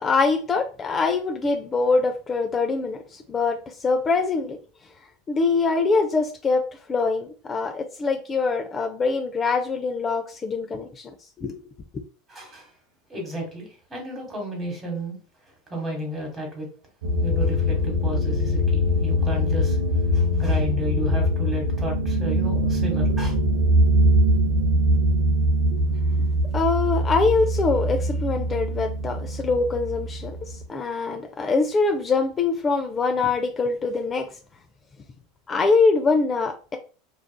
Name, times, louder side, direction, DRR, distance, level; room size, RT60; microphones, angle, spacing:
voice 1, 0.0-4.6 5.3-11.1 11.4-11.6 25.7-25.8 26.5-34.3 35.5-36.8, left 4 dB, 25° left, 0.3 m, -24 dB
voice 2, 12.3-12.7 13.1-15.2 15.7-16.7 17.2-19.8 20.1-23.3, equal, 20° right, 1.3 m, -32 dB
sound 1, 17.0-30.6, equal, 85° right, 0.6 m, -22 dB
2.5 x 2.4 x 2.2 m
supercardioid pair, 110°, 0 cm